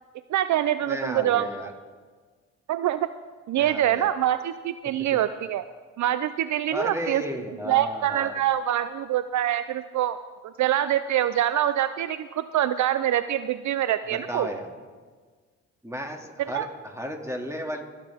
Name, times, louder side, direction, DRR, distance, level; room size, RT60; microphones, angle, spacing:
voice 1, 0.3-1.5 2.7-3.1 3.5-5.7 6.0-7.2 7.7-10.2 10.6-14.5 16.4-16.7, right 12 dB, 60° right, 13 dB, 0.5 m, -25 dB
voice 2, 0.9-1.7 3.5-4.1 6.7-8.4 14.3-14.7 15.8-17.8, equal, 10° right, 3 dB, 2.3 m, -33 dB
24.5 x 8.8 x 3.5 m, 1.5 s
supercardioid pair, 65°, 33 cm